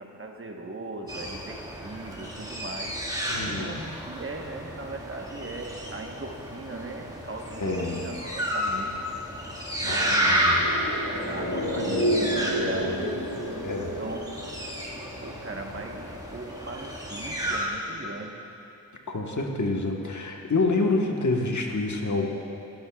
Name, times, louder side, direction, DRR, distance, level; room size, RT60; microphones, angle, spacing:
voice 1, 0.0-3.0 3.4-7.6 7.9-8.9 9.8-10.8 11.2-13.1 13.8-14.5 15.2-18.4, right 2 dB, 40° right, 2 dB, 1.2 m, -39 dB
sound 1, 1.1-17.7, equal, 10° right, 1.8 m, -31 dB
voice 2, 3.3-3.8 7.6-8.0 9.8-10.6 13.6-13.9 19.1-22.3, left 3 dB, 60° left, 1 dB, 1.3 m, -27 dB
sound 2, 10.4-14.9 15.2-15.3, equal, 85° left, 2.3 m, -29 dB
18.5 x 10.5 x 2.4 m, 2.8 s
cardioid pair, 50°, 34 cm